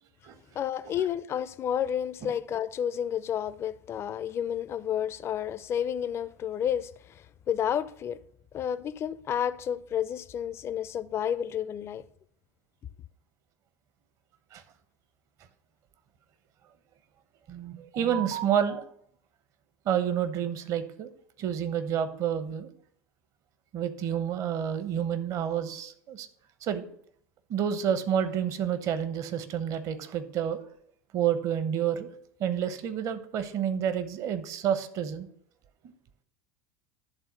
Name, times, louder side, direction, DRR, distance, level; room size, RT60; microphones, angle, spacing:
voice 1, 0.6-8.2 8.5-12.0, left 9 dB, 30° left, 0.5 m, -31 dB
voice 2, 17.5-18.8 19.9-21.1 21.4-22.7 23.7-26.3 26.6-26.9 27.5-30.6 31.1-32.1 32.4-35.3, right 9 dB, 45° right, 0.8 m, -29 dB
11.0 x 3.8 x 5.8 m
figure-of-eight pair, 75°, 8 cm